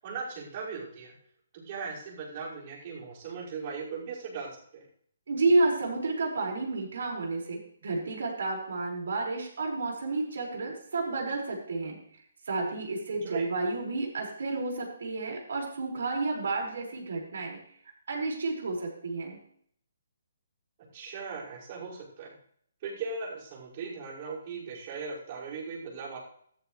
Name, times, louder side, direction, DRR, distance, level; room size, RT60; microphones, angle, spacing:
voice 1, 0.0-1.1 1.5-4.9 13.2-13.5 20.9-22.3 22.8-26.2, right 5 dB, 35° right, -5 dB, 5.7 m, -38 dB
voice 2, 5.3-12.0 12.5-17.6 18.1-19.4, right 3 dB, 75° right, -1 dB, 5.4 m, -30 dB
14.0 x 13.5 x 3.3 m, 0.64 s
hypercardioid pair, 165°, 0 cm